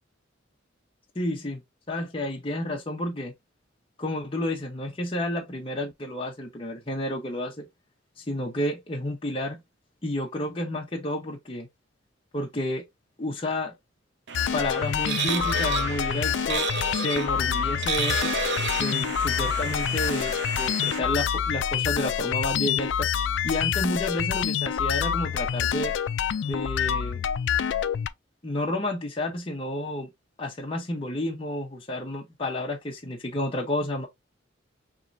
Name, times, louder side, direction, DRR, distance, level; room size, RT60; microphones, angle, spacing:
voice 1, 1.1-1.6 1.9-3.3 4.0-7.7 8.2-9.6 10.0-11.7 12.3-12.8 13.2-13.7 14.5-18.3 18.8-23.1 23.4-25.9 26.4-27.2 28.4-30.1 30.4-34.1, left 1 dB, 30° left, 0.9 m, -31 dB
sound 1, 14.3-28.1, left 8 dB, 70° left, 0.3 m, -27 dB
sound 2, 14.3-21.0, right 6 dB, 65° right, 0.7 m, -32 dB
4.7 x 3.1 x 2.5 m
head